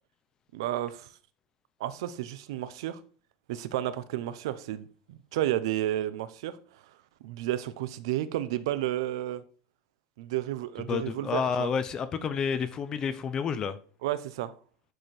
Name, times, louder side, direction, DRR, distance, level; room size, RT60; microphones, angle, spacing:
voice 1, 0.5-1.1 1.8-3.0 3.5-6.6 7.2-9.4 10.2-11.7 14.0-14.5, right 13 dB, 80° right, 1.1 m, -32 dB
voice 2, 10.9-13.8, left 6 dB, 25° left, 0.8 m, -30 dB
11.5 x 5.2 x 4.5 m
supercardioid pair, 150°, 3 cm